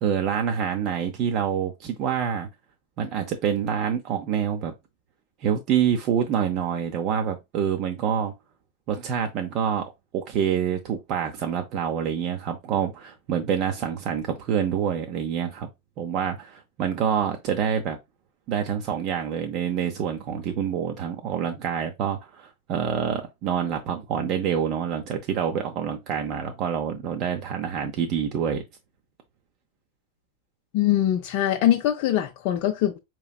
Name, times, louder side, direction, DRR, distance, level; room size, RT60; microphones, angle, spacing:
voice 1, 0.0-2.5 3.0-4.7 5.4-8.3 8.9-15.7 16.0-18.0 18.5-28.6, right 8 dB, 40° right, 0.6 m, -26 dB
voice 2, 30.7-33.0, left 12 dB, 45° left, 0.5 m, -22 dB
4.8 x 3.0 x 2.3 m
figure-of-eight pair, 90°, 0 cm